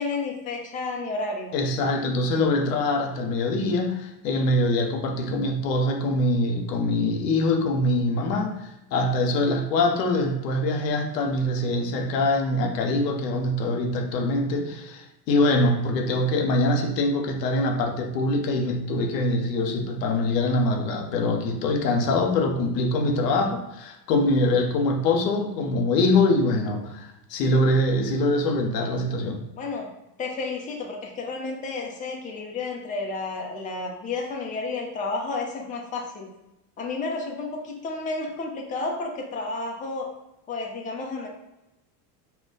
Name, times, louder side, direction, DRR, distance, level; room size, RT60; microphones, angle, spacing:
voice 1, 0.0-1.6 29.6-29.9 30.2-36.3 36.8-40.1 40.5-41.3, left 3 dB, 15° left, 0.5 m, -31 dB
voice 2, 1.5-29.4, left 2 dB, 85° left, 0.7 m, -24 dB
2.2 x 2.1 x 3.7 m
hypercardioid pair, 95°, 48 cm